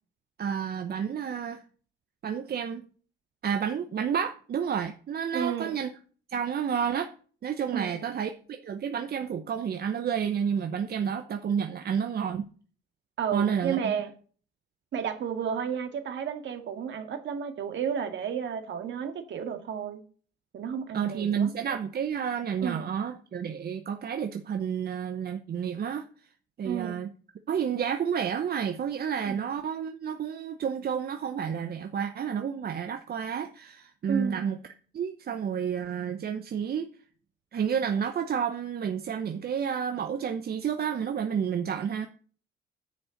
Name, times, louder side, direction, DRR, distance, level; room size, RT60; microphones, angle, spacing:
voice 1, 0.4-1.6 2.2-2.8 3.4-5.9 6.3-7.1 7.4-12.5 13.3-13.8 20.9-26.1 26.6-27.1 27.5-34.6 34.9-36.9 37.5-42.1, right 7 dB, 50° right, 7 dB, 0.9 m, -30 dB
voice 2, 5.3-5.8 7.7-8.0 13.2-14.1 14.9-20.0 20.5-21.5 22.6-22.9 26.6-27.0 29.3-29.4 34.1-34.5, right 7 dB, 70° right, 6 dB, 2.1 m, -32 dB
9.6 x 6.9 x 7.1 m, 0.42 s
cardioid pair, 90°, 20 cm